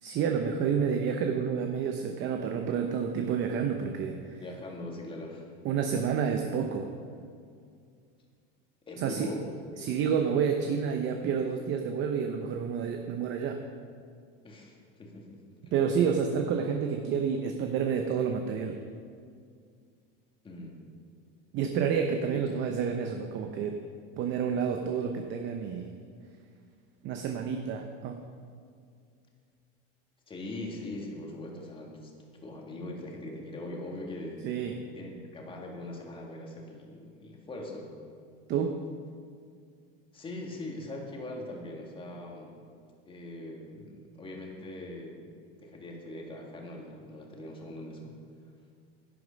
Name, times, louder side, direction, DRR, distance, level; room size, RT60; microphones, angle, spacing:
voice 1, 0.0-4.4 5.6-6.9 9.0-9.3 9.8-13.6 15.7-18.8 21.5-23.8 24.2-25.9 27.0-28.2 34.4-34.7 38.5-38.8, right 7 dB, 40° right, 5 dB, 0.8 m, -29 dB
voice 2, 4.4-5.5 8.9-9.8 14.4-15.4 20.4-20.8 22.3-22.4 30.3-32.1 32.4-34.7 34.9-37.9 40.1-42.6 43.1-45.3 45.6-48.2, left 1 dB, 15° left, 0 dB, 1.9 m, -41 dB
11.0 x 9.6 x 5.2 m, 2.2 s
supercardioid pair, 140°, 30 cm